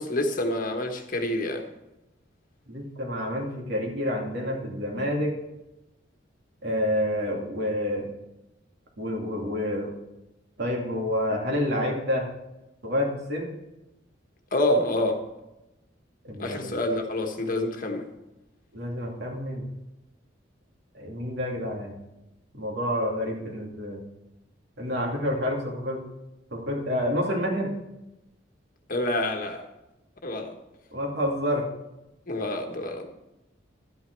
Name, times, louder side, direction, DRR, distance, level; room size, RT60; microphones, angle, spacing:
voice 1, 0.0-1.6 14.5-15.2 16.4-18.1 28.9-29.6 30.2-30.5 32.3-33.1, left 1 dB, 45° left, 4 dB, 1.3 m, -27 dB
voice 2, 2.7-5.4 6.6-8.1 9.0-9.9 10.6-12.3 12.8-13.6 16.2-16.8 18.7-19.7 20.9-22.0 22.5-24.0 24.8-26.0 26.5-27.7 30.9-31.6, equal, 60° right, 0 dB, 2.4 m, -28 dB
12.0 x 9.3 x 4.6 m, 0.96 s
head